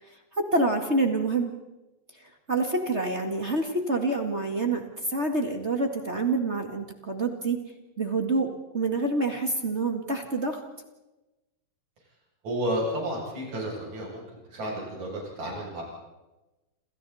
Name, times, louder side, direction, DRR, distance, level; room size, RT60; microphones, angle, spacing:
voice 1, 0.4-1.5 2.5-7.6 8.0-10.6, right 2 dB, 25° right, 4 dB, 1.6 m, -27 dB
voice 2, 12.4-14.2 14.5-15.8, equal, 60° right, -2 dB, 8.8 m, -31 dB
28.5 x 28.0 x 4.2 m, 1.0 s
omnidirectional pair, 3.8 m